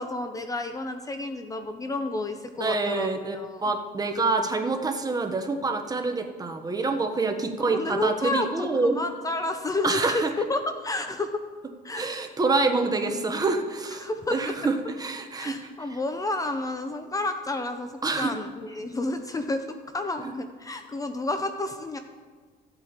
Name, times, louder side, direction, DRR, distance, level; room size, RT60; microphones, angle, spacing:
voice 1, 0.0-3.6 7.7-11.4 11.8-12.1 14.0-14.5 15.4-22.0, left 2 dB, 20° left, 7 dB, 0.5 m, -30 dB
voice 2, 2.6-9.0 9.8-10.3 11.9-15.5 15.9-16.0 18.0-18.3, right 3 dB, 20° right, 5 dB, 0.9 m, -26 dB
15.5 x 8.0 x 2.9 m, 1.5 s
cardioid pair, 110°, 17 cm